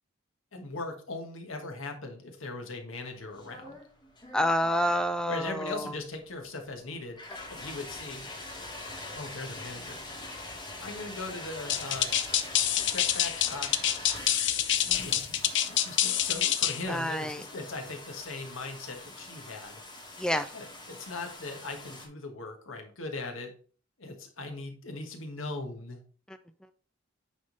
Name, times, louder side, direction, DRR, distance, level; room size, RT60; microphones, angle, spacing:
voice 1, 0.5-3.8 5.2-7.2 7.5-8.3 9.1-10.0 10.8-12.1 12.9-13.7 14.8-19.8 20.5-23.5 24.0-26.0, left 2 dB, 85° left, 4 dB, 1.5 m, -39 dB
sound 1, 3.1-22.1, left 2 dB, 20° left, 1.8 m, -44 dB
voice 2, 4.3-6.0 16.9-17.4 20.2-20.5 26.3-26.4, equal, 5° left, 9 dB, 0.3 m, -28 dB
sound 2, 11.7-16.8, left 11 dB, 60° left, 0.6 m, -26 dB
8.9 x 3.7 x 3.9 m, 0.41 s
head